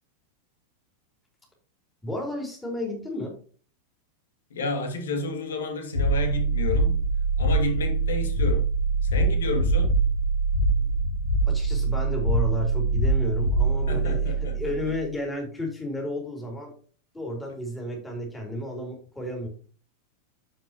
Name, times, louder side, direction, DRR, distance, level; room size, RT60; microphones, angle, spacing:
voice 1, 2.0-3.4 11.4-16.7 17.1-19.5, left 1 dB, 10° left, 3.4 m, -32 dB
voice 2, 4.5-7.0 7.4-8.7 9.0-9.9 13.9-14.6, left 3 dB, 65° left, 2.3 m, -31 dB
sound 1, 5.9-15.0, right 3 dB, 80° right, 1.9 m, -24 dB
9.9 x 7.3 x 3.0 m
figure-of-eight pair, 90°, 0 cm